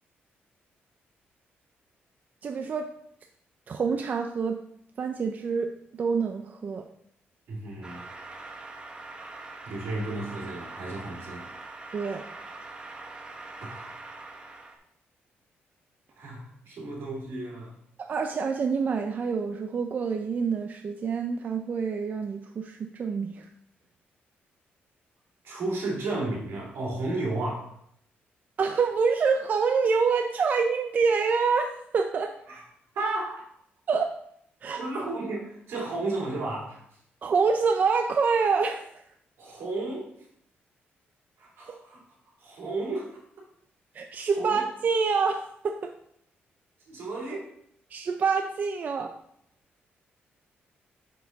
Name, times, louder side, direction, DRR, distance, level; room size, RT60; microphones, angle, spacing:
voice 1, 2.4-2.9 3.7-4.6 5.0-5.7 6.0-6.8 11.9-12.2 18.0-23.5 28.6-32.3 33.9-34.1 34.6-34.8 37.2-38.9 43.9-45.9 47.9-49.1, right 5 dB, 45° right, 4 dB, 0.5 m, -26 dB
voice 2, 7.5-8.1 9.6-11.5 13.6-14.0 16.2-17.7 25.4-27.8 32.5-32.6 32.9-33.5 34.8-36.8 39.4-40.1 41.4-42.0 42.4-43.2 44.3-44.6 46.9-47.5, right 2 dB, 75° right, -3 dB, 3.2 m, -33 dB
sound 1, 7.8-14.8, right 3 dB, 25° right, 1.1 m, -43 dB
6.9 x 6.2 x 4.0 m, 0.70 s
cardioid pair, 130°, 4 cm